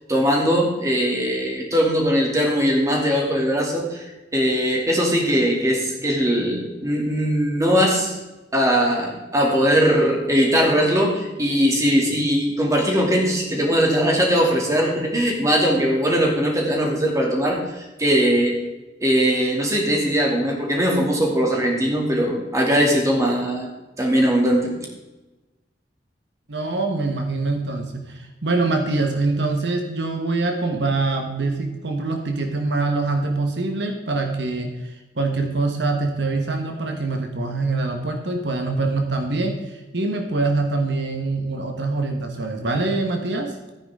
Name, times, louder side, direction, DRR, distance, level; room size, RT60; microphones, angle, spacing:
voice 1, 0.1-4.1 4.3-8.2 8.5-18.5 19.0-23.7 24.0-24.7, equal, 20° right, -1 dB, 2.6 m, -20 dB
voice 2, 26.5-43.6, right 3 dB, 70° right, 4 dB, 1.4 m, -24 dB
14.5 x 9.6 x 3.8 m, 1.1 s
head